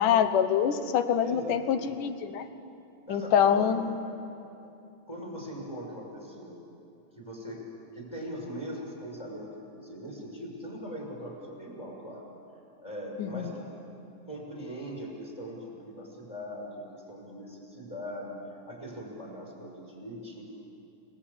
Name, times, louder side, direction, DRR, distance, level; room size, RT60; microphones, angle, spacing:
voice 1, 0.0-2.5 3.1-4.0 13.2-13.5, left 8 dB, 80° left, 10 dB, 2.6 m, -25 dB
voice 2, 1.2-1.9 3.1-3.8 5.1-6.6 7.2-7.7 7.9-12.3 12.8-13.7 14.3-20.4, equal, 5° left, -1 dB, 5.9 m, -40 dB
29.0 x 19.0 x 8.7 m, 2.7 s
omnidirectional pair, 3.7 m